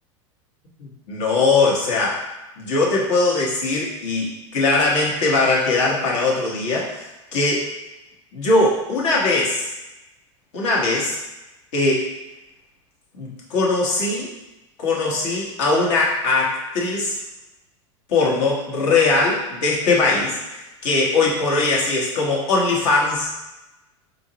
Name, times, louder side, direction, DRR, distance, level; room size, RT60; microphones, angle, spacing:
voice 1, 0.8-2.2 2.6-7.7 8.3-9.7 10.5-11.2 11.7-12.0 13.2-14.3 14.8-17.2 18.1-23.3, left 3 dB, 65° left, -3 dB, 1.1 m, -20 dB
4.0 x 2.4 x 2.8 m, 1.0 s
hypercardioid pair, 95°, 16 cm